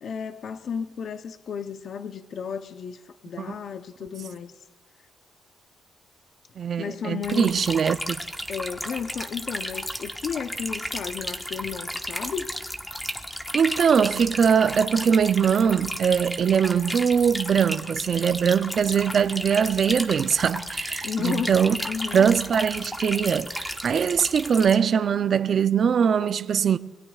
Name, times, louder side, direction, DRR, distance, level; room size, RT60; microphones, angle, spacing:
voice 1, 0.0-4.5 6.8-7.6 8.5-12.5 21.0-22.3 26.2-26.3, left 7 dB, 55° left, 0.7 m, -33 dB
voice 2, 6.6-8.2 13.5-21.7 22.1-26.8, right 7 dB, 50° right, 0.5 m, -22 dB
sound 1, 7.2-24.8, equal, 5° left, 1.2 m, -33 dB
26.5 x 22.0 x 2.4 m
cardioid pair, 120°, 0 cm